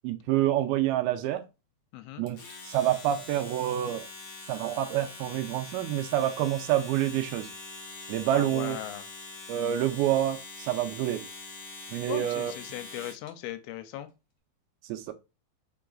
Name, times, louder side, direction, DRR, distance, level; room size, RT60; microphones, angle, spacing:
voice 1, 0.0-1.4 2.2-2.4 2.6-4.1 4.5-7.5 8.1-8.8 9.5-11.3 11.9-12.5 14.9-15.1, right 12 dB, 85° right, 2.3 m, -27 dB
voice 2, 1.9-2.3 8.3-9.1 12.1-14.1, left 12 dB, 85° left, 2.5 m, -38 dB
Domestic sounds home sounds, 2.3-13.3, left 3 dB, 70° left, 1.3 m, -44 dB
5.3 x 3.8 x 2.4 m
omnidirectional pair, 4.6 m